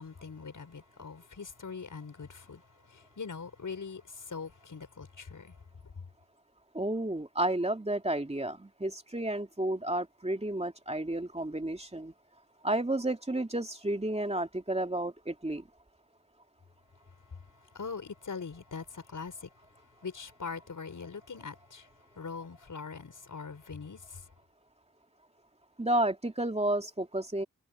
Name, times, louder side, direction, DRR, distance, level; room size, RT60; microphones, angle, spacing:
voice 1, 0.0-2.6 2.9-5.5 17.7-19.5 20.0-21.9 22.1-24.2, left 5 dB, 70° left, 4.9 m, -42 dB
voice 2, 6.7-12.1 12.6-15.6 25.8-27.4, right 1 dB, 20° right, 2.6 m, -31 dB
cardioid pair, 45°, 32 cm